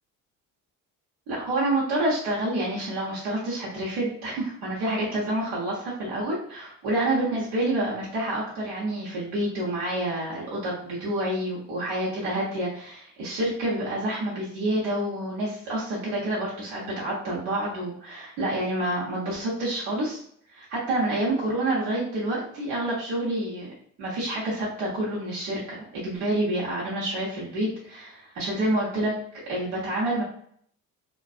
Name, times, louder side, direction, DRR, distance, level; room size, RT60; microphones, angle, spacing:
voice 1, 1.3-20.2 20.5-23.7 24.0-29.1 29.5-30.2, right 1 dB, 75° right, -7 dB, 1.0 m, -28 dB
2.5 x 2.3 x 2.4 m, 0.65 s
hypercardioid pair, 55°, 41 cm